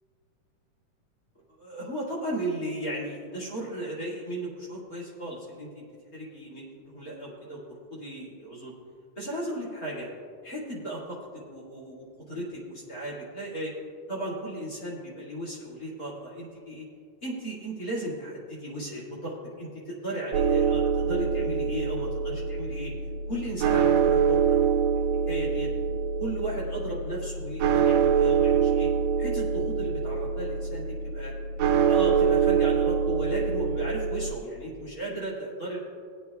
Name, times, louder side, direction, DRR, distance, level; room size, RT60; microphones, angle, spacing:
voice 1, 1.3-5.8 6.1-8.7 9.1-10.1 10.4-13.7 14.1-16.9 17.2-22.9 23.3-24.6 25.3-25.7 26.2-28.9 29.2-31.3 31.8-35.8, right 1 dB, 30° left, -4 dB, 2.3 m, -35 dB
sound 1, 20.3-34.3, right 7 dB, 75° right, 1.7 m, -25 dB
20.0 x 8.5 x 2.3 m, 2.2 s
omnidirectional pair, 3.6 m